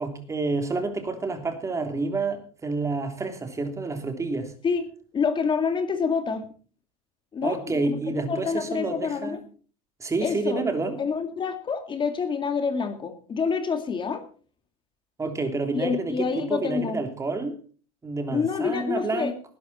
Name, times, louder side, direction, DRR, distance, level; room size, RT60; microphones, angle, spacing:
voice 1, 0.0-4.5 7.4-9.4 10.0-11.0 15.2-17.6 18.0-19.4, right 3 dB, 15° right, 3.2 m, -29 dB
voice 2, 5.1-6.5 7.3-8.0 8.3-9.4 10.2-10.6 11.0-14.2 15.7-17.0 18.3-19.3, left 5 dB, 25° left, 2.2 m, -27 dB
19.0 x 11.0 x 4.3 m
supercardioid pair, 125°, 18 cm